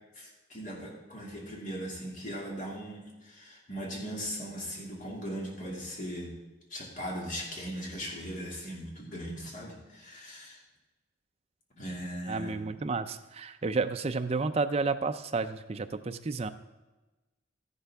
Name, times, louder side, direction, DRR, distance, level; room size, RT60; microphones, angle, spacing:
voice 1, 0.1-6.3 6.7-10.6 11.7-12.7, equal, 40° left, -2 dB, 2.4 m, -39 dB
voice 2, 12.3-16.5, right 4 dB, 30° right, 8 dB, 0.5 m, -31 dB
13.0 x 11.0 x 3.5 m, 1.1 s
head